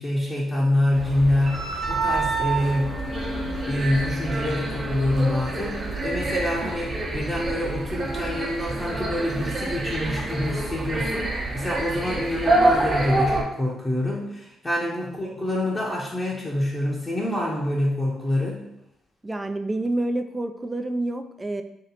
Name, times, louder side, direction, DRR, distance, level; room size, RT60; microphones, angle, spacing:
voice 1, 0.0-3.4 3.7-18.7, left 1 dB, 15° left, -5 dB, 0.7 m, -26 dB
sound 1, 0.9-13.4, right 2 dB, 40° right, 0.7 m, -27 dB
sound 2, 2.3-9.8, left 3 dB, 85° left, 0.9 m, -40 dB
voice 2, 19.2-21.6, right 2 dB, 20° right, 8 dB, 0.3 m, -28 dB
3.0 x 2.9 x 4.0 m, 0.83 s
cardioid pair, 90°, 0 cm